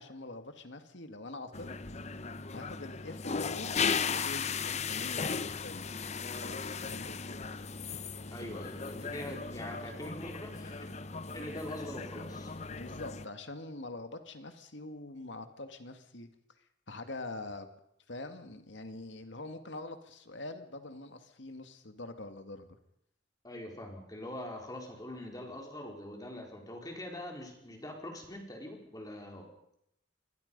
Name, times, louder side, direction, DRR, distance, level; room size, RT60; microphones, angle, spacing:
voice 1, 0.0-1.7 2.5-6.0 6.4-7.3 7.9-8.0 12.7-16.3 16.9-17.7 18.1-22.7, left 2 dB, 70° left, 7 dB, 2.1 m, -44 dB
sound 1, 1.5-13.3, left 5 dB, 35° left, 0.8 m, -36 dB
voice 2, 8.3-11.0 11.3-12.5 23.4-29.5, left 1 dB, 20° left, 2 dB, 4.1 m, -43 dB
28.0 x 21.5 x 5.4 m, 0.75 s
head